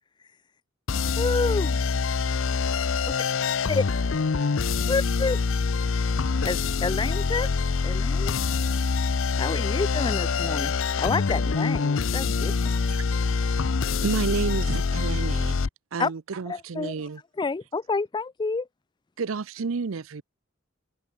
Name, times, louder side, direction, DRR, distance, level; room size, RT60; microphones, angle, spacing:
sound 1, 0.9-15.7, left 5 dB, 70° left, 0.6 m, -25 dB
voice 1, 1.2-1.8 3.7-3.8 4.9-5.4 6.4-7.5 7.8-8.5 9.4-10.7 11.0-12.5 16.0-16.1 16.5-16.9 17.4-18.7, left 4 dB, 20° left, 0.3 m, -28 dB
voice 2, 1.8-5.2, right 3 dB, 20° right, 4.4 m, -61 dB
voice 3, 14.0-15.6 15.9-17.2 19.2-20.2, right 4 dB, 85° right, 0.6 m, -30 dB
head